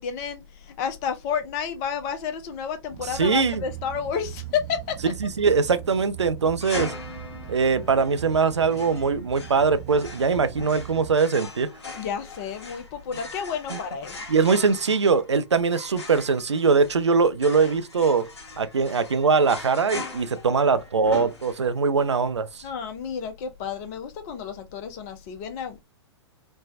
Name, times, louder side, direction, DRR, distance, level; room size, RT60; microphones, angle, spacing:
voice 1, 0.0-5.0 12.0-14.2 22.6-25.8, left 7 dB, 35° left, 0.6 m, -31 dB
sound 1, 2.9-11.1, right 12 dB, 45° right, 0.8 m, -40 dB
voice 2, 3.1-3.6 5.0-6.9 7.5-11.7 13.7-13.8 14.3-18.3 18.6-22.6, right 5 dB, 80° right, 0.4 m, -22 dB
sound 2, 6.6-21.9, left 3 dB, 65° left, 1.3 m, -40 dB
3.3 x 2.1 x 2.5 m
figure-of-eight pair, 105°, 15 cm